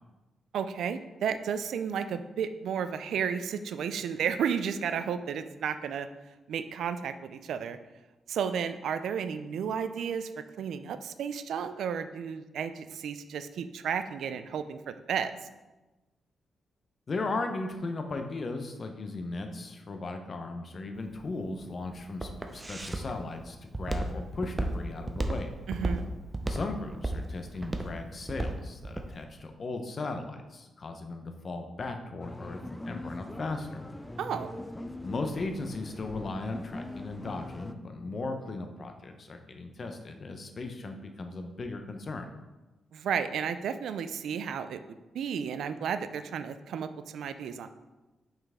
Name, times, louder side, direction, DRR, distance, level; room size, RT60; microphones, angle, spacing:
voice 1, 0.5-6.1 6.5-7.8 8.3-10.3 10.6-15.3 25.7-26.1 34.2-34.5 42.9-44.8 45.1-47.7, right 7 dB, 80° right, 11 dB, 0.4 m, -32 dB
voice 2, 17.1-25.5 26.5-32.6 32.8-33.8 35.0-42.3, left 3 dB, 45° left, 5 dB, 0.8 m, -37 dB
Walk footsteps, 21.0-29.1, right 1 dB, 20° right, 0.7 m, -33 dB
sound 1, 32.2-37.7, left 1 dB, 10° left, 0.4 m, -42 dB
5.8 x 5.6 x 3.6 m, 1.1 s
cardioid pair, 85°, 0 cm